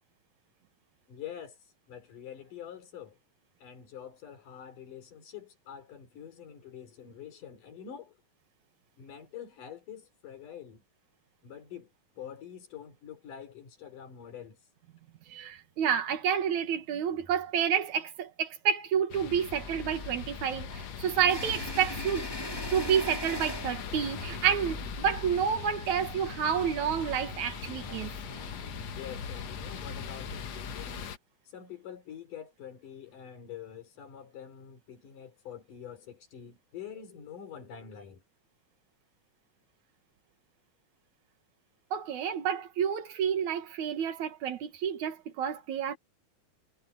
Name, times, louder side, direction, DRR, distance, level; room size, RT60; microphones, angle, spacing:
voice 1, 1.1-1.6 1.9-3.2 3.6-8.2 9.0-10.8 11.4-14.6 28.9-31.1 31.5-38.2, left 9 dB, 80° left, 5.4 m, -46 dB
voice 2, 15.3-22.3 22.7-28.1 41.9-46.0, right 8 dB, 70° right, 2.8 m, -29 dB
sound 1, 19.1-31.2, left 7 dB, 60° left, 2.4 m, -41 dB
sound 2, 19.5-31.0, left 1 dB, 10° left, 1.5 m, -42 dB
omnidirectional pair, 3.6 m